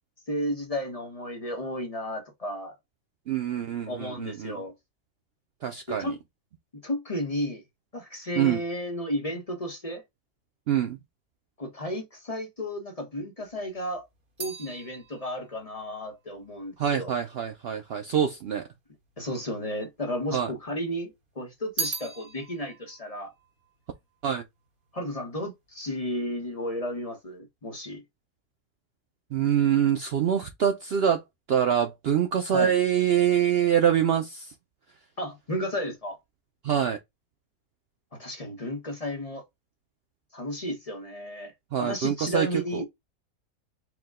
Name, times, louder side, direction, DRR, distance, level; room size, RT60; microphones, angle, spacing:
voice 1, 0.3-2.8 3.9-4.7 5.9-6.2 6.8-7.6 7.9-10.0 11.6-14.1 14.4-17.1 19.2-21.1 21.4-23.3 24.9-28.0 32.5-32.7 35.2-36.2 38.1-39.4 40.3-42.8, equal, 30° left, 0.8 m, -33 dB
voice 2, 3.3-4.6 5.6-6.1 8.4-8.6 10.7-11.0 16.8-18.7 20.3-20.5 24.2-24.4 29.3-31.2 31.5-34.5 36.6-37.0 41.7-42.8, right 9 dB, 90° right, 0.5 m, -25 dB
sound 1, 13.4-17.8 18.6-19.4 19.7-20.9 21.2-24.7 25.0-25.5, right 3 dB, 40° right, 1.3 m, -40 dB
4.8 x 2.2 x 3.5 m
omnidirectional pair, 1.7 m